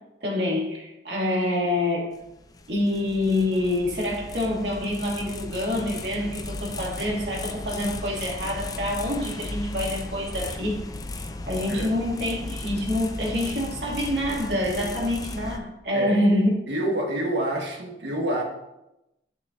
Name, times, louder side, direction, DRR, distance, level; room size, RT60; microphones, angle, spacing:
voice 1, 0.2-2.2 2.7-10.8 11.5-16.5, left 1 dB, 65° right, -4 dB, 2.4 m, -26 dB
sound 1, 2.1-15.6, left 2 dB, 20° left, 0.4 m, -36 dB
voice 2, 16.7-18.4, right 1 dB, 80° right, 1 dB, 1.4 m, -27 dB
7.9 x 6.9 x 2.7 m, 0.91 s
head